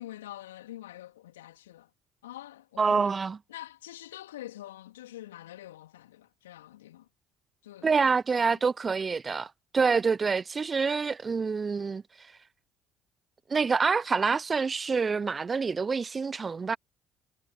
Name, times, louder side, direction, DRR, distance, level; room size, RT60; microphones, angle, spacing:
voice 1, 0.0-1.9 2.2-3.2 3.5-7.1 7.6-8.6, left 14 dB, 75° left, 3.4 m, -46 dB
voice 2, 2.8-3.4 7.8-12.0 13.5-16.8, right 5 dB, 30° right, 0.9 m, -26 dB
figure-of-eight pair, 50°, 0 cm